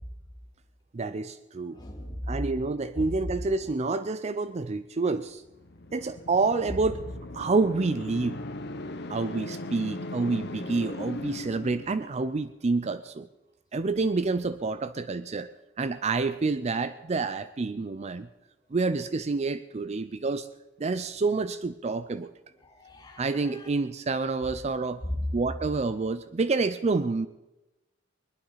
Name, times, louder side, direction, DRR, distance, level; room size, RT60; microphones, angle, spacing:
voice 1, 0.9-1.8 2.3-5.4 5.9-7.0 7.3-8.4 9.1-13.3 13.7-15.5 15.8-18.3 18.7-20.5 20.8-22.3 23.2-25.0 25.3-27.3, right 3 dB, 35° right, 0.5 m, -28 dB
voice 2, 1.7-2.4 2.9-3.3 22.6-23.7 25.0-25.3, left 1 dB, 20° left, 3.0 m, -35 dB
sound 1, 5.4-12.4, left 2 dB, 60° left, 1.1 m, -39 dB
20.5 x 11.5 x 5.7 m
head